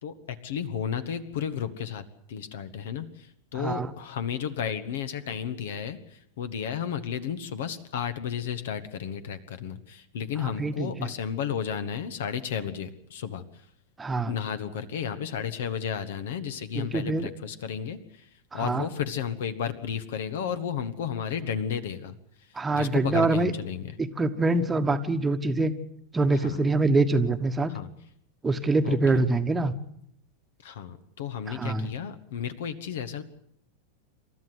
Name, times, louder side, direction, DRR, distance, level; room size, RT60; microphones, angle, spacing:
voice 1, 0.0-2.0 2.3-13.4 14.3-18.3 18.5-22.1 22.7-23.9 26.4-26.6 27.7-27.9 28.8-29.2 30.6-33.2, left 8 dB, 55° left, 11 dB, 1.5 m, -33 dB
voice 2, 3.5-3.9 10.4-10.9 14.0-14.3 16.7-17.3 18.5-18.8 22.5-23.5 24.0-25.7 26.1-27.7 28.4-29.7 31.5-31.9, right 3 dB, 15° right, 8 dB, 1.4 m, -25 dB
28.0 x 13.5 x 7.9 m, 0.74 s
figure-of-eight pair, 90°, 0 cm